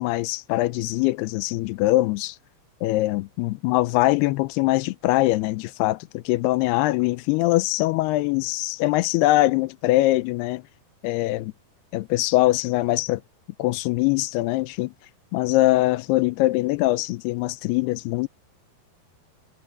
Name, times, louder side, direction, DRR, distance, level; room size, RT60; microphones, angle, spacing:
voice 1, 0.0-2.4 2.8-10.6 11.0-11.5 11.9-13.2 13.6-14.9 15.3-18.3, left 18 dB, 80° left, 2.6 m, -22 dB
omnidirectional pair, 4.8 m